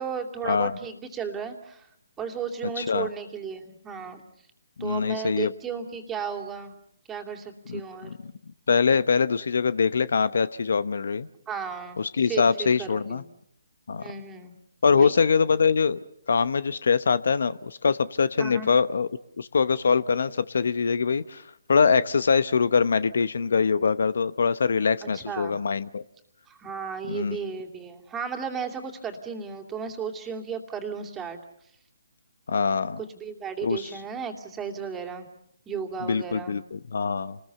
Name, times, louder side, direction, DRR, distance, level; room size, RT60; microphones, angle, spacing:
voice 1, 0.0-1.9 2.2-4.2 4.8-6.7 7.1-8.1 11.5-12.0 12.2-13.2 14.0-14.5 14.9-15.3 18.4-18.7 25.0-25.6 26.5-31.4 33.1-35.3 35.7-36.6, right 6 dB, 10° right, 4 dB, 2.8 m, -34 dB
voice 2, 2.8-3.1 4.8-5.5 7.7-8.3 8.7-11.3 12.0-13.2 13.9-14.1 14.8-16.0 16.3-19.1 19.4-21.4 21.7-26.0 27.1-27.4 32.5-33.0 33.6-33.9 36.0-37.4, left 5 dB, 65° left, 15 dB, 0.9 m, -23 dB
29.5 x 20.5 x 6.9 m, 0.76 s
figure-of-eight pair, 145°, 0 cm